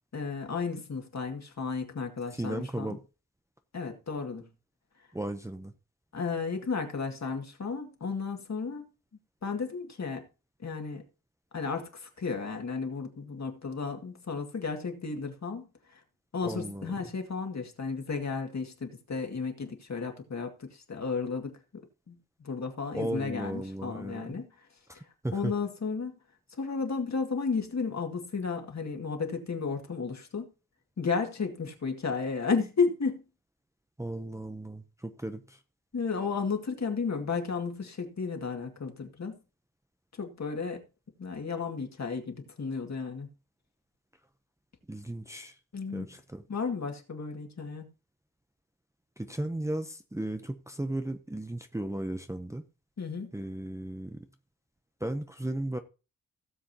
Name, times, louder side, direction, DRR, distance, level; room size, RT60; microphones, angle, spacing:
voice 1, 0.1-3.0 3.7-4.5 6.1-8.9 9.4-10.3 10.6-11.0 11.5-15.6 16.3-21.6 22.1-22.2 22.4-24.5 25.3-26.1 26.6-30.5 31.0-33.2 35.9-39.4 40.2-40.8 41.2-43.3 45.7-46.1 46.5-47.9 53.0-53.3, left 5 dB, 50° left, 2.2 m, -33 dB
voice 2, 2.4-3.0 5.1-5.7 16.4-16.9 22.9-24.4 24.9-25.5 34.0-35.6 44.9-45.5 45.9-46.4 49.2-52.6 53.3-54.2 55.0-55.8, right 1 dB, 10° right, 0.7 m, -35 dB
17.0 x 7.5 x 2.9 m
wide cardioid pair, 145°, 34 cm